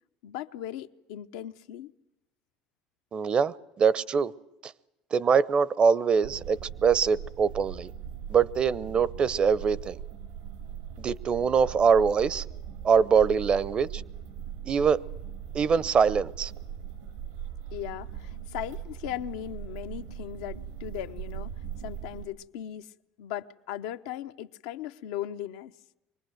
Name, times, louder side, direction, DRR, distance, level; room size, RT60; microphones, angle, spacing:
voice 1, 0.2-1.9 17.7-21.5 21.8-22.9 23.2-25.7, left 12 dB, 85° left, 0.8 m, -38 dB
voice 2, 3.1-4.3 4.6-4.7 5.1-7.9 8.3-10.0 11.0-12.4 12.8-14.0 14.7-15.0 15.5-16.5, right 6 dB, 40° right, 0.7 m, -23 dB
sound 1, 6.2-22.3, right 9 dB, 85° right, 2.4 m, -40 dB
24.0 x 19.5 x 7.9 m
supercardioid pair, 90°, 3 cm